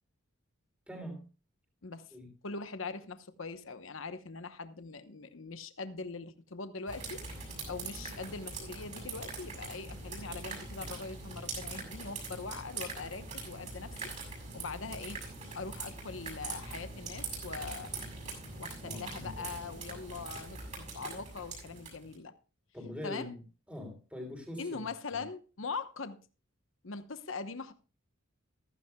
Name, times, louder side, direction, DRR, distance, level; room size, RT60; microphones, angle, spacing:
voice 1, 0.9-1.2 2.1-2.3 18.8-19.6 22.7-23.4 23.7-24.9 25.1-25.2, left 1 dB, 5° right, 3.4 m, -43 dB
voice 2, 1.8-2.1 2.4-14.1 14.5-15.2 15.5-17.9 18.6-22.3 23.0-23.3 24.6-26.2 26.8-27.7, left 4 dB, 75° left, 1.0 m, -42 dB
sound 1, 6.9-22.1, right 3 dB, 35° right, 6.6 m, -42 dB
15.5 x 14.5 x 2.3 m
head